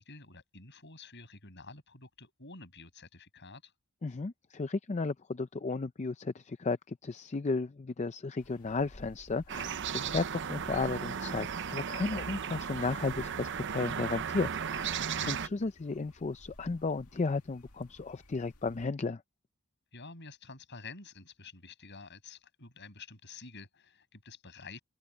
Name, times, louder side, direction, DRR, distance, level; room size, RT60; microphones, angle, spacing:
voice 1, 0.0-3.7 15.0-15.3 19.9-24.8, left 4 dB, 50° left, 6.8 m, -49 dB
voice 2, 4.0-15.0 15.3-19.2, left 3 dB, 30° left, 0.5 m, -34 dB
sound 1, 8.4-18.9, left 1 dB, 85° left, 2.3 m, -56 dB
sound 2, 9.5-15.5, right 7 dB, 55° right, 0.7 m, -35 dB
head